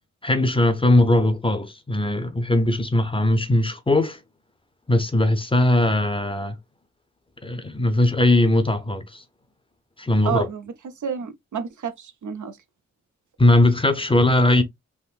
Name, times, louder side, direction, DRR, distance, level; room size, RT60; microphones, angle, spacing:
voice 1, 0.2-4.2 4.9-6.6 7.4-9.2 10.0-10.5 13.4-14.6, left 1 dB, 20° left, 0.5 m, -19 dB
voice 2, 10.2-10.7 11.0-12.6, right 7 dB, 80° right, 0.5 m, -29 dB
3.6 x 2.5 x 2.4 m
wide cardioid pair, 110°, 30 cm